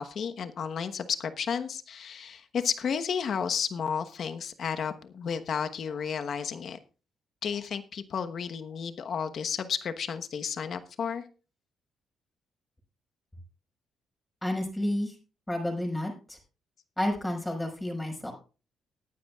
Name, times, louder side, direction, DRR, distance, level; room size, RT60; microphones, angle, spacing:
voice 1, 0.0-6.8 7.4-11.2, left 7 dB, 60° left, 9 dB, 1.1 m, -32 dB
voice 2, 14.4-15.1 15.5-16.4 17.0-18.3, left 1 dB, 10° left, 2 dB, 5.2 m, -30 dB
19.5 x 9.5 x 2.4 m, 0.35 s
cardioid pair, 75°, 0 cm